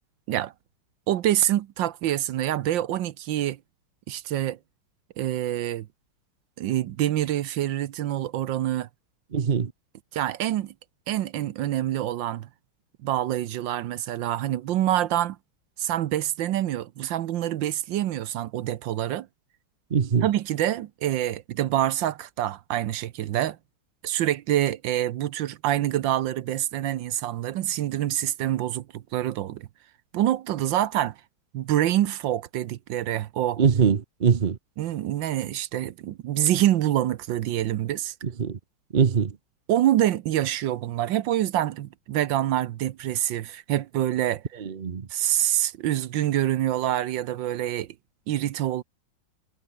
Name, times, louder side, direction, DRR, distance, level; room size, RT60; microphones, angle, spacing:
voice 1, 1.1-3.6 4.1-4.6 5.2-5.9 6.6-8.9 10.1-10.7 11.1-12.5 13.0-15.4 15.8-19.3 20.2-23.6 24.0-29.7 30.1-31.1 31.5-33.6 34.8-38.1 39.7-44.4 45.1-47.9 48.3-48.8, right 12 dB, 70° right, 1.4 m, -26 dB
voice 2, 9.3-9.7 19.9-20.2 33.6-34.6 38.2-38.6 38.9-39.3 44.6-45.1, right 6 dB, 50° right, 0.6 m, -22 dB
omnidirectional pair, 2.3 m